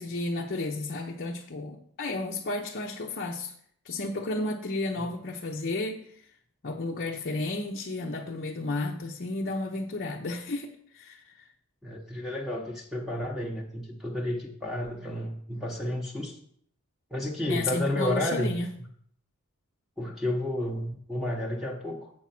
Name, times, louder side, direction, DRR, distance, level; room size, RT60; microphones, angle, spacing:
voice 1, 0.0-3.5 3.8-6.2 6.6-11.5 17.5-18.7, left 2 dB, 45° left, 0 dB, 0.7 m, -32 dB
voice 2, 11.8-16.4 17.1-18.6 20.0-22.1, left 1 dB, ahead, -1 dB, 1.0 m, -31 dB
7.8 x 6.1 x 5.9 m, 0.64 s
head